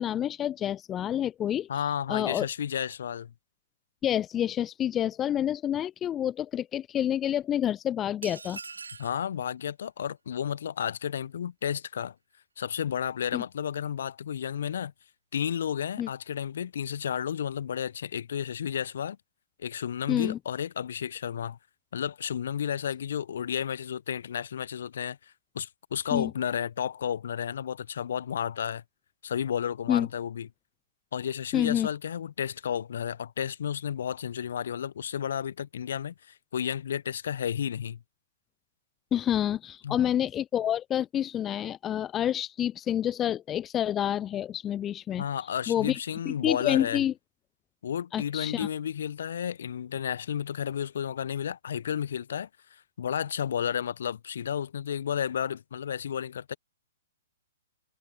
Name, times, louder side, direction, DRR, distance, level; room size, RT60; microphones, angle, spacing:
voice 1, 0.0-2.5 4.0-8.6 13.3-13.4 16.0-16.1 20.1-20.4 26.1-26.3 29.9-30.1 31.5-31.9 39.1-46.0 46.3-47.1 48.1-48.7, left 10 dB, 20° left, 0.4 m, -28 dB
voice 2, 1.7-3.3 9.0-12.1 12.6-14.9 15.3-19.2 19.6-21.6 21.9-25.2 25.5-28.8 29.2-30.5 31.1-38.0 39.8-40.0 45.2-47.0 47.8-56.5, left 8 dB, 60° left, 1.1 m, -32 dB
sound 1, 8.2-9.2, right 4 dB, 75° right, 3.7 m, -41 dB
figure-of-eight pair, 120°, 0 cm